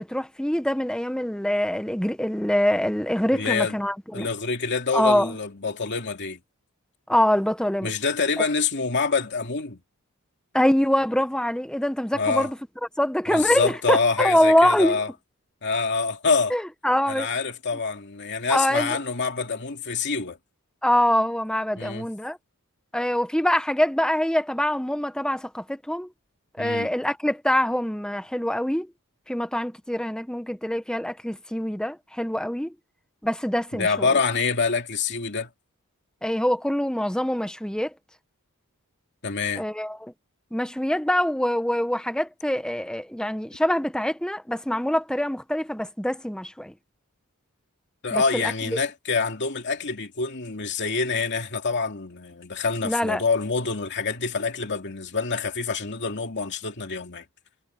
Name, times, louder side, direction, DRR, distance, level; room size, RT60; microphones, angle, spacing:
voice 1, 0.0-4.3 4.9-5.3 7.1-7.9 8.4-8.5 10.5-12.6 13.0-15.0 16.5-17.3 18.5-19.0 20.8-22.4 22.9-26.1 26.6-28.9 29.3-32.7 33.2-34.1 36.2-37.9 39.6-40.1 40.5-46.7 48.1-48.8 52.8-53.2, left 1 dB, 5° left, 0.9 m, -24 dB
voice 2, 3.3-3.8 4.1-6.4 7.8-9.8 12.1-12.5 13.3-15.1 15.6-16.5 17.1-20.4 21.8-22.1 26.6-26.9 33.7-35.5 39.2-39.6 48.0-57.2, left 4 dB, 55° left, 2.6 m, -26 dB
head